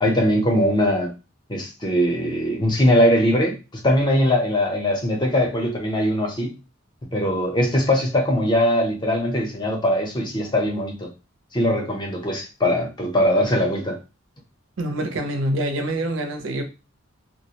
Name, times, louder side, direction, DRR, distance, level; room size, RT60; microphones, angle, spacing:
voice 1, 0.0-1.1 1.5-3.6 3.8-6.5 7.1-11.1 11.5-14.0, equal, 20° left, 0.6 m, -21 dB
voice 2, 14.8-16.6, right 1 dB, 65° right, 0.6 m, -25 dB
2.4 x 2.0 x 2.8 m
head